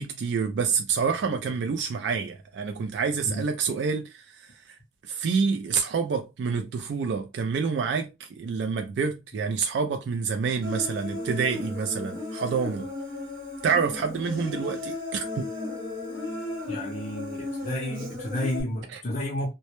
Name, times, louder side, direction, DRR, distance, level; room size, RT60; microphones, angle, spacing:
voice 1, 0.0-4.8 5.0-12.9 13.6-15.5, right 5 dB, 70° right, 0.3 m, -28 dB
Human voice, 10.6-18.6, left 2 dB, 50° right, 1.0 m, -35 dB
voice 2, 16.7-19.5, left 1 dB, 40° left, 0.5 m, -31 dB
2.1 x 2.0 x 2.8 m
head